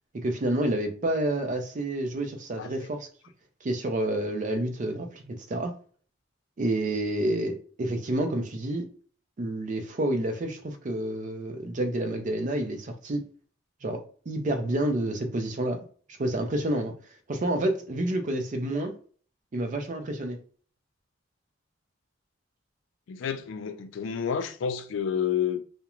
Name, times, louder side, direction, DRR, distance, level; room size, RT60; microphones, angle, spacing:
voice 1, 0.1-3.1 3.6-5.8 6.6-8.9 9.4-13.3 13.8-15.8 16.2-16.9 17.3-18.9 19.5-20.4, right 1 dB, 40° right, 0.5 m, -29 dB
voice 2, 23.1-25.6, left 8 dB, 85° left, 0.4 m, -29 dB
2.4 x 2.1 x 2.9 m
head